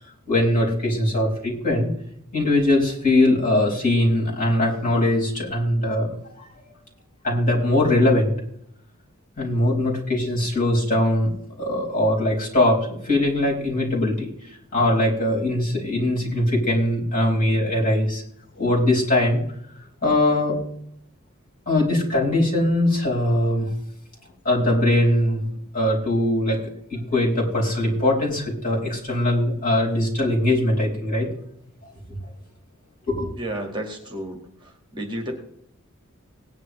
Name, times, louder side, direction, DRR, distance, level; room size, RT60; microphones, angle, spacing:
voice 1, 0.3-1.9 2.3-6.1 7.2-8.3 9.4-11.3 11.6-18.2 18.5-19.4 20.0-20.6 21.7-23.7 24.4-25.4 25.7-26.6 26.9-31.3 32.1-32.2 33.1-33.4, left 1 dB, 40° left, -4 dB, 4.9 m, -21 dB
voice 2, 33.4-34.4 34.9-35.3, right 1 dB, 20° right, 2 dB, 1.8 m, -31 dB
18.0 x 10.5 x 3.2 m, 0.71 s
head